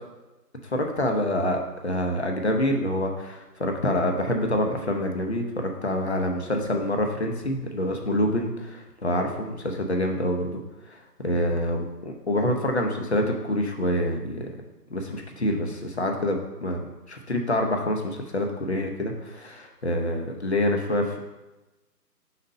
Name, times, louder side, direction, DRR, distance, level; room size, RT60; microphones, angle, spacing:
voice 1, 0.6-10.6 10.9-11.0 11.2-14.6 14.9-16.8 17.1-21.2, left 1 dB, 45° left, 3 dB, 0.8 m, -26 dB
5.1 x 4.1 x 5.3 m, 1.1 s
figure-of-eight pair, 160°, 48 cm